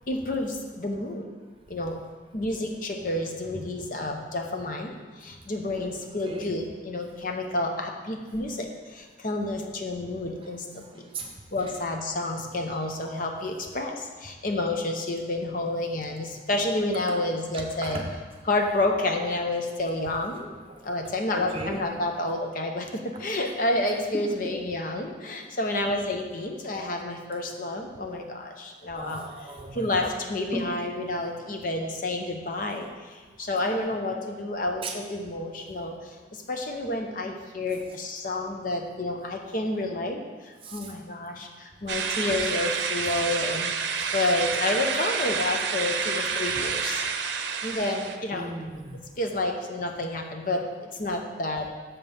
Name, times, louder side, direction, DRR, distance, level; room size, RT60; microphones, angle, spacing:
voice 1, 0.1-1.3 1.7-2.0 2.3-11.1 11.5-18.0 18.5-20.5 20.8-29.2 29.7-43.7 44.1-47.0 47.6-48.5 49.2-51.7, left 2 dB, 45° left, 3 dB, 0.8 m, -30 dB
voice 2, 11.0-11.3 11.6-11.7 17.5-18.0 20.7-20.8 21.3-22.0 23.1-23.2 29.0-30.1 30.5-30.6 33.9-34.0 34.8-34.9 40.6-40.9 43.0-43.1 44.0-44.1 47.5-47.6 48.3-49.0, right 2 dB, 30° right, 2 dB, 0.8 m, -37 dB
sound 1, 41.9-48.2, right 6 dB, 70° right, 0.6 m, -29 dB
7.0 x 5.2 x 5.4 m, 1.3 s
head